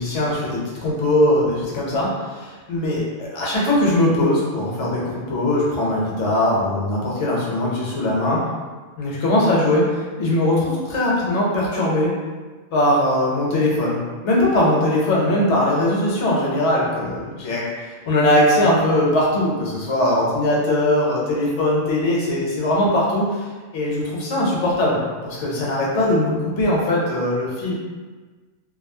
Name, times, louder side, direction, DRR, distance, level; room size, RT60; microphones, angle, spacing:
voice 1, 0.0-8.5 9.0-9.9 10.2-12.1 12.7-23.4 23.7-27.7, left 1 dB, 70° left, -4 dB, 1.0 m, -20 dB
2.6 x 2.3 x 2.6 m, 1.3 s
omnidirectional pair, 1.3 m